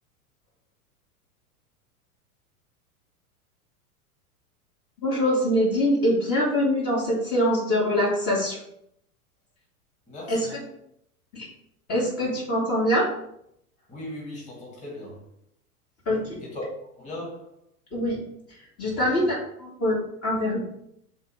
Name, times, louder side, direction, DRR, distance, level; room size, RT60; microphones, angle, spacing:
voice 1, 5.0-8.6 10.3-10.6 11.3-11.5 11.9-13.1 16.1-16.4 17.9-18.2 18.8-20.6, equal, 30° left, 2.7 m, -24 dB
voice 2, 10.1-10.6 13.9-15.2 16.4-16.7 16.9-17.5 19.0-19.3, left 1 dB, 15° left, 2.7 m, -38 dB
5.4 x 3.9 x 5.9 m
figure-of-eight pair, 95°, 46 cm